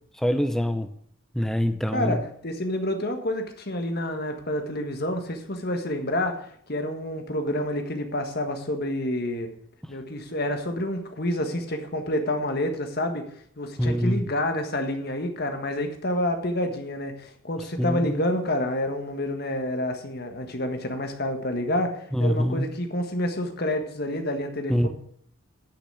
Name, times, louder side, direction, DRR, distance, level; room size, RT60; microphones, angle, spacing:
voice 1, 0.2-0.9 1.3-2.2 13.8-14.2 17.8-18.2 22.1-22.7 24.7-24.9, equal, ahead, 8 dB, 0.7 m, -24 dB
voice 2, 1.9-9.5 9.9-13.3 13.6-24.9, left 1 dB, 45° left, 5 dB, 1.5 m, -28 dB
10.0 x 6.1 x 7.6 m, 0.64 s
head